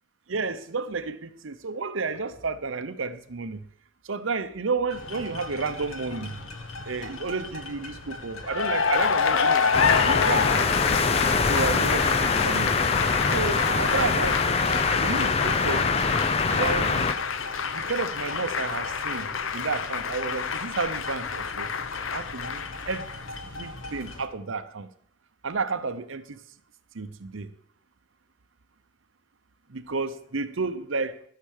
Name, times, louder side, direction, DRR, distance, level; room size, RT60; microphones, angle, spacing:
voice 1, 0.3-3.6 4.0-6.4 6.9-10.7 11.5-12.8 13.3-14.4 15.0-15.9 16.5-17.2 17.7-21.7 22.1-23.1 23.4-24.9 25.4-26.4 26.9-27.5 29.7-31.2, right 4 dB, 70° right, 0.8 m, -31 dB
sound 1, 4.9-24.3, left 2 dB, 85° left, 1.5 m, -40 dB
Cheering / Applause, 8.4-23.4, left 6 dB, 70° left, 0.7 m, -28 dB
sound 2, 9.7-17.1, left 4 dB, 30° left, 0.5 m, -24 dB
13.5 x 6.7 x 6.5 m
head